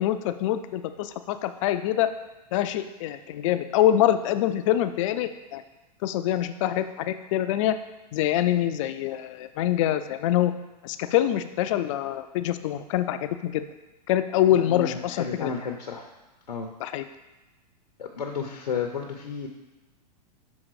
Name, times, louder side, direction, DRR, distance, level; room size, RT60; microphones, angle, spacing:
voice 1, 0.0-2.1 2.5-5.6 6.0-7.8 8.1-10.5 10.8-13.6 14.1-15.5 16.8-17.0, left 12 dB, 50° left, 10 dB, 0.4 m, -25 dB
voice 2, 14.5-16.1 16.5-16.7 18.0-19.5, left 6 dB, 90° left, 2 dB, 0.7 m, -32 dB
6.3 x 3.6 x 4.7 m, 1.1 s
hypercardioid pair, 110°, 21 cm